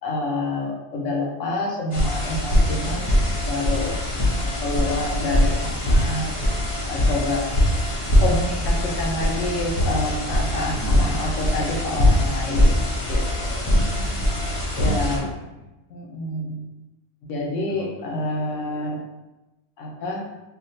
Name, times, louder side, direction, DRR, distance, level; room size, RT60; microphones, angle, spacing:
voice 1, 0.0-3.1 3.5-4.0 4.4-6.4 6.9-7.4 8.2-12.8 13.1-13.7 14.8-15.3 15.9-16.7 17.2-19.0 19.8-20.2, left 2 dB, 85° left, -2 dB, 1.1 m, -28 dB
sound 1, 1.9-15.2, left 1 dB, 40° left, 0.5 m, -22 dB
voice 2, 2.8-3.3 10.8-11.3 13.7-14.3 14.8-15.7 17.7-18.0, right 3 dB, 60° right, -2 dB, 0.8 m, -37 dB
3.5 x 2.3 x 2.6 m, 1.0 s
omnidirectional pair, 1.3 m